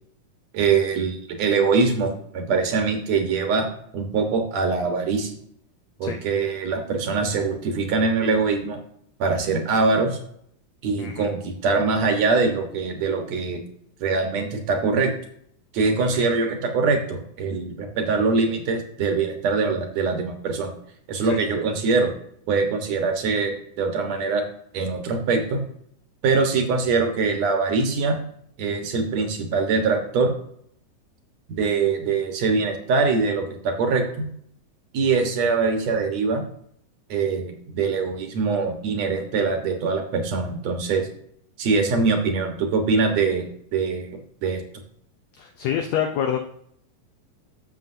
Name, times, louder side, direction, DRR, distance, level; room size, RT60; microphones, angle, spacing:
voice 1, 0.5-3.7 3.9-5.4 6.0-8.8 9.2-10.2 10.8-13.6 14.0-15.1 15.7-20.7 21.1-22.1 22.5-24.4 24.7-25.6 26.2-28.2 28.6-30.4 31.5-34.2 34.9-36.4 37.1-41.1 41.6-43.5 43.7-44.1 44.4-44.6, right 4 dB, 60° right, 4 dB, 2.3 m, -23 dB
voice 2, 11.0-11.3 16.0-16.3 21.2-21.4 45.4-46.4, left 8 dB, 75° left, 4 dB, 1.6 m, -27 dB
13.5 x 7.1 x 2.7 m, 0.67 s
omnidirectional pair, 3.9 m